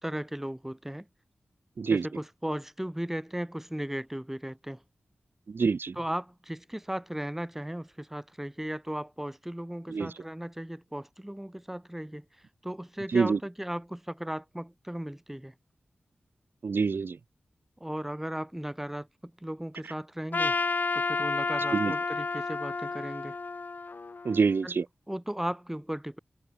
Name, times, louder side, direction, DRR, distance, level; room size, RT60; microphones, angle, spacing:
voice 1, 0.0-1.1 1.9-4.8 5.9-12.2 12.6-15.5 17.8-20.6 20.9-23.4 24.6-26.2, right 1 dB, 5° right, 3.7 m, -36 dB
voice 2, 5.5-5.9 9.9-10.1 13.1-13.4 16.6-17.2 21.7-21.9 24.2-24.8, right 5 dB, 65° right, 1.2 m, -25 dB
Trumpet, 20.3-24.6, left 4 dB, 50° left, 3.5 m, -31 dB
wide cardioid pair, 75°, 4 cm